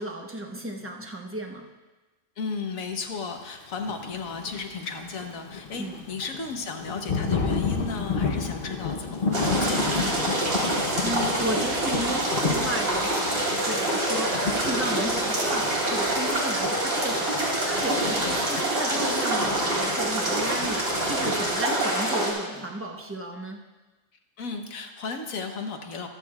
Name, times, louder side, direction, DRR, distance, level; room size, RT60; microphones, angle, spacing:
voice 1, 0.0-1.6 5.8-6.0 11.0-23.6, right 1 dB, 10° right, 2 dB, 0.8 m, -34 dB
voice 2, 2.4-10.6 24.4-26.1, left 4 dB, 75° left, 4 dB, 1.5 m, -35 dB
Thunder / Rain, 3.7-21.8, left 5 dB, 45° left, 1.0 m, -33 dB
sound 1, 9.3-22.3, right 1 dB, 90° right, 3.2 m, -26 dB
24.0 x 8.4 x 2.4 m, 1.2 s
omnidirectional pair, 1.4 m